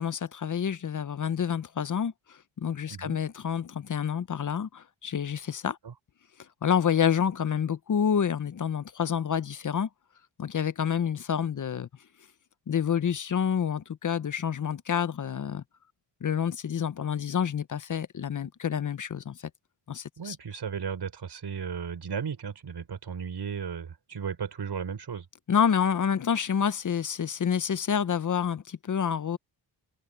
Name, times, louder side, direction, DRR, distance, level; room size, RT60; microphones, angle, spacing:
voice 1, 0.0-5.8 6.6-9.9 10.4-11.9 12.7-15.6 16.2-19.4 19.9-20.4 25.5-29.4, left 8 dB, 45° left, 0.8 m, -28 dB
voice 2, 20.2-25.3, right 6 dB, 65° right, 5.4 m, -35 dB
cardioid pair, 85°, 44 cm